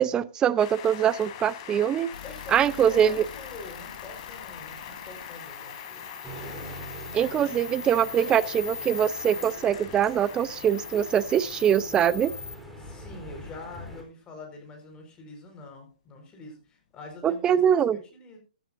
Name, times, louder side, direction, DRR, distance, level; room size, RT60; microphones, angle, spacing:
voice 1, 0.0-2.1 2.5-3.2 7.1-12.3 17.2-18.0, right 9 dB, 15° right, 18 dB, 0.6 m, -23 dB
sound 1, 0.6-12.6, left 9 dB, 45° left, 3.7 m, -43 dB
sound 2, 2.1-12.6, left 5 dB, 85° left, 1.6 m, -41 dB
voice 2, 2.2-6.9 7.2-8.4 12.8-18.4, left 3 dB, 20° left, 3 dB, 4.8 m, -46 dB
sound 3, 6.2-14.0, equal, ahead, 3.9 m, -44 dB
15.5 x 13.0 x 2.6 m, 0.34 s
hypercardioid pair, 135°, 5 cm